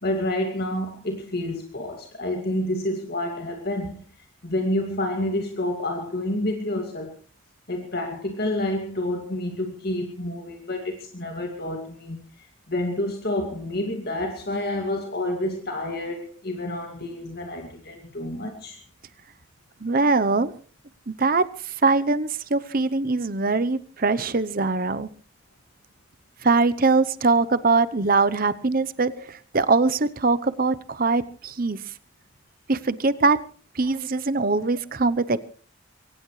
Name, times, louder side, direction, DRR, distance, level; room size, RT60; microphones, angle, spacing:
voice 1, 0.0-7.1 7.7-18.8 33.8-33.9, left 1 dB, 50° left, 3 dB, 2.3 m, -29 dB
voice 2, 19.8-20.5 21.1-25.1 26.4-29.1 29.5-31.8 32.7-33.4 33.7-35.4, right 3 dB, 45° right, 14 dB, 0.8 m, -22 dB
23.0 x 19.0 x 3.2 m, 0.41 s
head